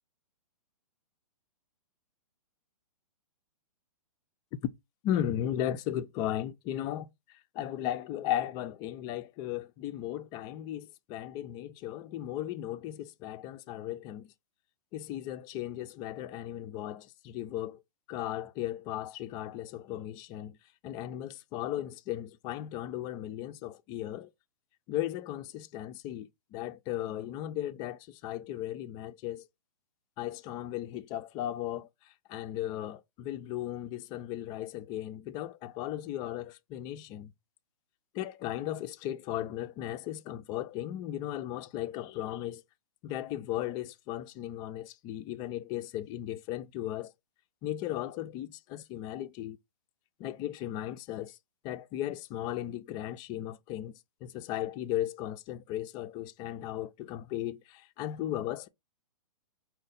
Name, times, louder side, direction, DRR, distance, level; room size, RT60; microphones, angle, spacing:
voice 1, 5.0-14.3 14.9-17.8 18.1-20.6 20.8-24.3 24.9-29.5 30.2-37.3 38.1-42.6 43.0-47.1 47.6-49.6 50.2-51.4 51.6-58.7, left 12 dB, 20° left, 0.3 m, -36 dB
5.3 x 2.1 x 3.9 m
hypercardioid pair, 125°, 19 cm